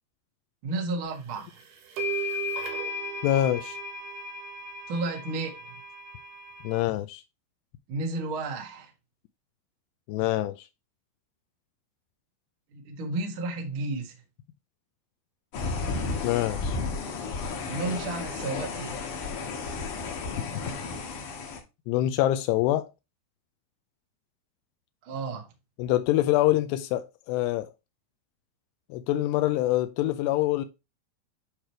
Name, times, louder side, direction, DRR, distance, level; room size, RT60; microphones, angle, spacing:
voice 1, 0.6-1.5 4.9-5.5 7.9-8.9 12.7-14.1 17.7-19.0 25.0-25.5, right 3 dB, 85° right, 1.1 m, -32 dB
sound 1, 1.4-1.5 2.0-6.8, equal, 65° right, 2.9 m, -35 dB
voice 2, 3.2-3.8 6.6-7.2 10.1-10.6 16.2-16.8 21.9-22.9 25.8-27.7 28.9-30.6, left 14 dB, 85° left, 2.4 m, -25 dB
sound 2, 15.5-21.6, left 4 dB, 60° left, 2.3 m, -33 dB
9.0 x 3.3 x 4.4 m
omnidirectional pair, 5.3 m